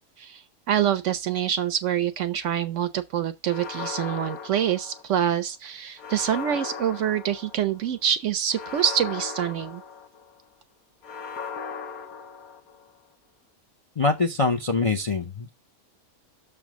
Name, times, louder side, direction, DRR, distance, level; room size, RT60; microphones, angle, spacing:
voice 1, 0.2-9.8, right 10 dB, 65° right, 0.8 m, -26 dB
sound 1, 3.5-5.3 6.0-7.8 8.5-10.4 11.0-12.9, left 6 dB, 75° left, 1.4 m, -37 dB
voice 2, 14.0-15.6, left 3 dB, 35° left, 0.5 m, -24 dB
6.5 x 3.5 x 6.0 m
omnidirectional pair, 1.6 m